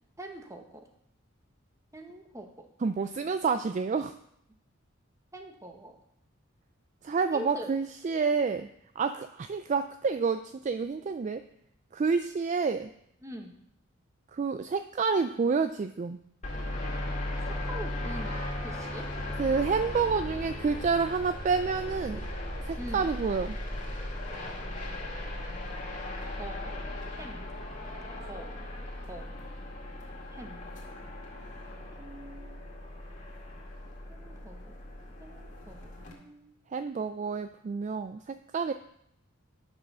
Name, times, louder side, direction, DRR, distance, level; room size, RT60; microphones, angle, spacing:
voice 1, 0.2-0.8 1.9-2.7 5.3-6.0 7.3-7.7 13.2-13.5 17.4-19.1 22.8-23.1 26.3-26.8 27.1-27.5 28.2-28.5 29.1-29.3 30.3-30.7 32.0-32.5 34.1-34.8 35.2-36.5, right 1 dB, 15° right, 4 dB, 1.1 m, -44 dB
voice 2, 2.8-4.1 7.0-8.7 9.0-11.4 11.9-12.9 14.3-16.2 19.4-22.3 22.6-23.6 36.7-38.7, right 5 dB, 35° right, 10 dB, 0.3 m, -29 dB
sound 1, 16.4-36.1, left 1 dB, 35° left, 2.1 m, -37 dB
9.4 x 6.3 x 6.1 m, 0.74 s
head